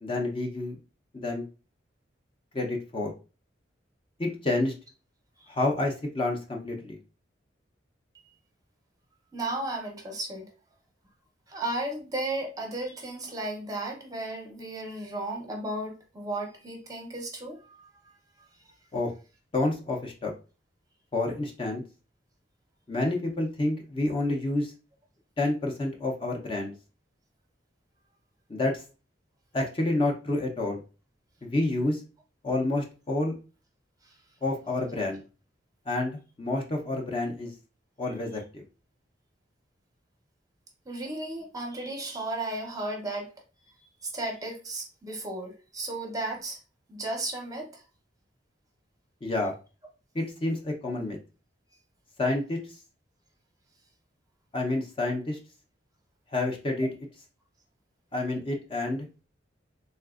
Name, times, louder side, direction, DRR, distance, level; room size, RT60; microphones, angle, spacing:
voice 1, 0.0-0.7 1.1-1.4 2.5-3.1 4.2-4.7 5.5-7.0 18.9-19.1 19.5-20.3 21.1-21.8 22.9-24.7 25.4-26.7 28.5-28.8 29.5-30.8 31.4-32.0 32.4-33.3 34.4-35.2 35.9-36.1 36.4-37.5 38.0-38.6 49.2-49.5 50.1-51.2 52.2-52.6 54.5-55.4 56.3-56.9 58.1-59.2, left 2 dB, 30° left, 0.5 m, -29 dB
voice 2, 9.3-10.5 11.5-17.9 18.6-18.7 34.0-34.2 40.9-43.3 43.8-46.6 46.9-47.8, right 2 dB, 20° right, 0.6 m, -34 dB
3.3 x 2.8 x 2.4 m
head